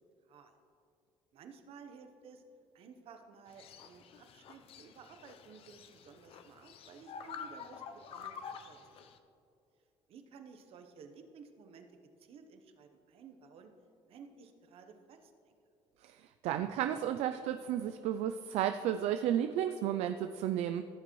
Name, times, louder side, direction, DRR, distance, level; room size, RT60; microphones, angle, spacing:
voice 1, 1.3-2.4 2.7-7.8 8.1-9.1 10.1-11.9 12.2-13.7 14.1-15.6, right 5 dB, 65° right, 6 dB, 1.0 m, -55 dB
sound 1, 3.5-9.2, left 6 dB, 60° left, 0.6 m, -49 dB
voice 2, 16.0-20.9, right 10 dB, 80° right, 8 dB, 0.4 m, -33 dB
15.5 x 6.7 x 3.1 m, 2.6 s
cardioid pair, 115°, 11 cm